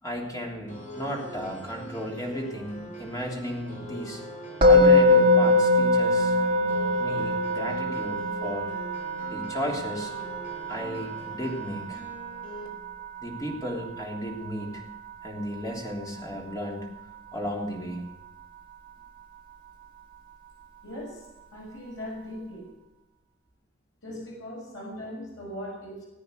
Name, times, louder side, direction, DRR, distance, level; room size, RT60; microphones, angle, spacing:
voice 1, 0.0-4.2 4.6-6.3 7.0-8.7 9.3-10.1 10.7-12.0 13.2-14.9 15.2-16.9 17.3-18.0, equal, 15° left, 0 dB, 3.4 m, -34 dB
sound 1, 0.7-12.7, right 1 dB, 40° left, 4.0 m, -43 dB
Musical instrument, 4.6-15.7, left 2 dB, 25° right, 3.9 m, -24 dB
voice 2, 20.8-21.2 21.5-22.7 24.0-26.1, left 1 dB, 70° left, -2 dB, 6.2 m, -39 dB
19.0 x 9.2 x 6.7 m, 1.0 s
head